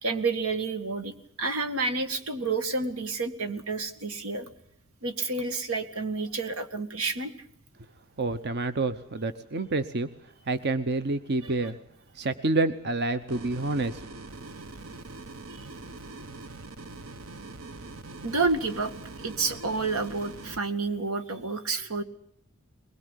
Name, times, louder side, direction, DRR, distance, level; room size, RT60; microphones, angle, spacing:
voice 1, 0.0-4.5 5.0-7.3 11.4-11.6 15.5-15.6 18.2-22.0, right 3 dB, 90° right, 9 dB, 2.0 m, -30 dB
voice 2, 8.2-10.1 10.5-11.8 12.1-14.0, right 2 dB, 50° right, 11 dB, 0.9 m, -28 dB
sound 1, 13.3-20.6, right 2 dB, 70° right, 1.2 m, -43 dB
22.0 x 21.0 x 8.3 m, 0.68 s
head